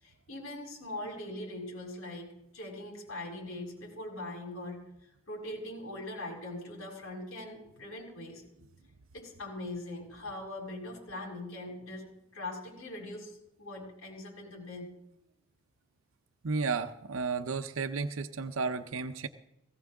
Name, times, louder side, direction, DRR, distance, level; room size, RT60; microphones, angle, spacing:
voice 1, 0.0-8.4 9.1-12.1 12.3-14.9, left 1 dB, 85° left, -2 dB, 6.7 m, -41 dB
voice 2, 16.4-19.3, right 4 dB, 80° right, 9 dB, 0.7 m, -33 dB
19.0 x 16.0 x 3.6 m, 0.84 s
head